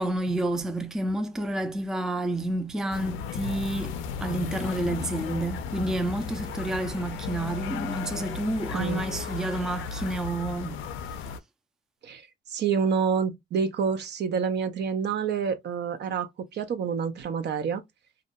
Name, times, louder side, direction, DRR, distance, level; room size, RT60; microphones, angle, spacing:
voice 1, 0.0-3.9 4.2-10.8, right 1 dB, 5° right, 0.4 m, -29 dB
sound 1, 2.9-11.4, left 6 dB, 90° left, 0.4 m, -35 dB
voice 2, 8.7-9.0 12.0-17.8, right 6 dB, 60° right, 0.6 m, -28 dB
2.5 x 2.1 x 2.8 m
cardioid pair, 90°, 20 cm